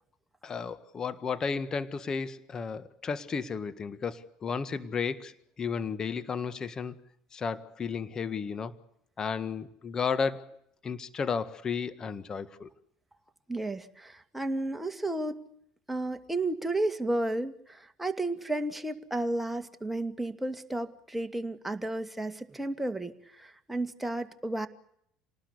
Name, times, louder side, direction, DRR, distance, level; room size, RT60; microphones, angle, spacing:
voice 1, 0.4-7.0 7.3-8.7 9.2-12.7, left 5 dB, 30° left, 12 dB, 1.7 m, -33 dB
voice 2, 13.5-15.4 15.9-24.7, right 2 dB, 5° right, 7 dB, 2.3 m, -32 dB
28.5 x 19.5 x 8.5 m, 0.74 s
figure-of-eight pair, 65°, 2 cm